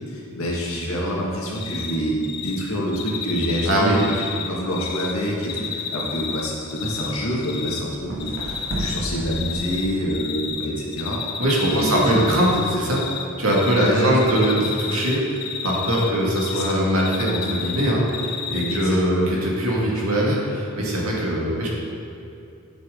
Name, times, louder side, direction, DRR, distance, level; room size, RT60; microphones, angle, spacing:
voice 1, 0.1-11.2 11.7-12.5 13.7-14.2 16.5-16.8 18.7-19.3, equal, 80° left, -3 dB, 1.9 m, -27 dB
Cricket, 1.5-2.0 2.2-2.5 2.9-5.1 5.4-7.1 7.4-7.8 8.2-9.0 9.3-10.7 10.9-13.2 13.5-13.9 14.2-16.7 17.0-18.8, left 7 dB, 50° left, 0.8 m, -31 dB
voice 2, 3.7-4.0 11.4-13.0 13.4-21.7, equal, 85° right, -4 dB, 2.2 m, -21 dB
sound 1, 4.5-10.4, right 1 dB, 60° right, 1.9 m, -35 dB
10.0 x 7.6 x 3.8 m, 2.8 s
head